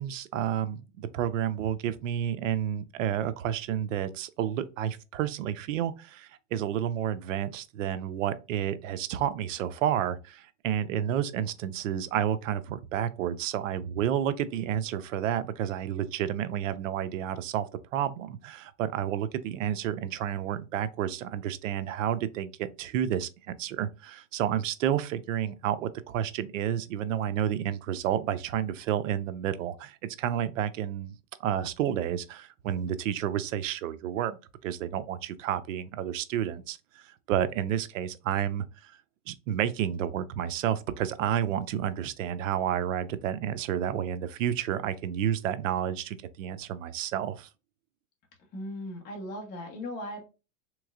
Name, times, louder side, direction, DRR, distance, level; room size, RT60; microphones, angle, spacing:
voice 1, 0.0-34.4 34.6-38.9 39.3-47.5, right 10 dB, 75° right, 0.6 m, -30 dB
voice 2, 48.5-50.3, left 1 dB, 25° left, 0.9 m, -38 dB
3.6 x 3.0 x 2.4 m
supercardioid pair, 140°, 39 cm